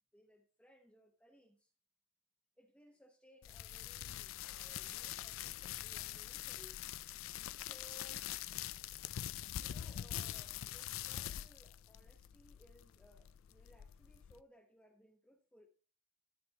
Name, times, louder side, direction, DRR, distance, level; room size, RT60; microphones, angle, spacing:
voice 1, 0.1-1.7 2.6-6.8 7.5-8.3 9.5-15.7, equal, 5° left, 1.0 m, -64 dB
sound 1, 3.4-14.4, left 12 dB, 85° left, 0.4 m, -44 dB
13.5 x 5.1 x 2.9 m
head